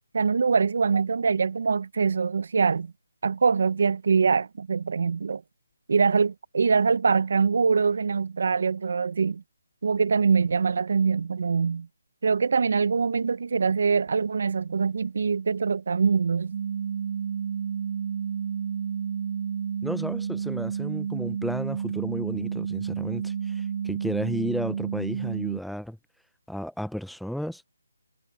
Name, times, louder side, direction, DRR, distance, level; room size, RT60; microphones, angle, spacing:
voice 1, 0.1-2.9 3.2-5.4 5.9-9.4 9.8-11.9 12.2-16.6, right 5 dB, 60° right, 0.9 m, -23 dB
sound 1, 16.5-25.6, right 7 dB, 40° right, 5.3 m, -30 dB
voice 2, 19.8-26.0 26.5-27.6, equal, ahead, 0.5 m, -33 dB
hypercardioid pair, 165°, 0 cm